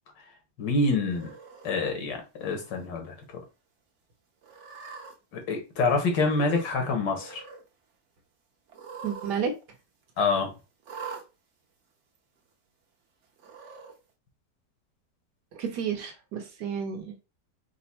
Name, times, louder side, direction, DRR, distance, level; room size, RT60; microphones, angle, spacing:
voice 1, 0.6-1.3 1.6-3.2 5.3-7.4 10.2-10.5, left 3 dB, 85° left, 1.8 m, -26 dB
Cat, 1.1-1.7 2.4-2.8 3.2-3.3 4.4-5.1 6.1-6.8 7.0-7.6 8.7-9.3 9.6-9.7 10.8-11.2 12.1-12.2 13.4-13.9, right 5 dB, 50° right, 1.0 m, -43 dB
voice 2, 9.0-9.5 15.5-17.2, right 7 dB, 75° right, 1.5 m, -31 dB
4.8 x 2.2 x 4.2 m
omnidirectional pair, 1.8 m